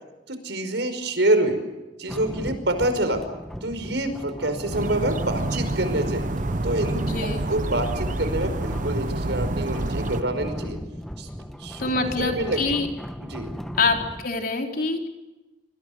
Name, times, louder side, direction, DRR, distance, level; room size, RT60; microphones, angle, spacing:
voice 1, 0.3-1.6 2.0-3.2 3.6-6.2 6.6-6.9 7.5-10.8 11.2-11.3 11.6-11.9 12.2-12.6 13.2-13.5, right 1 dB, 85° right, 9 dB, 5.3 m, -26 dB
sound 1, 2.1-14.3, equal, ahead, 1.2 m, -36 dB
sound 2, 4.7-10.2, right 2 dB, 45° right, 1.1 m, -28 dB
voice 2, 6.9-7.4 11.8-12.9 13.8-15.1, left 3 dB, 55° left, 2 dB, 4.3 m, -25 dB
27.0 x 25.5 x 6.6 m, 1.1 s
head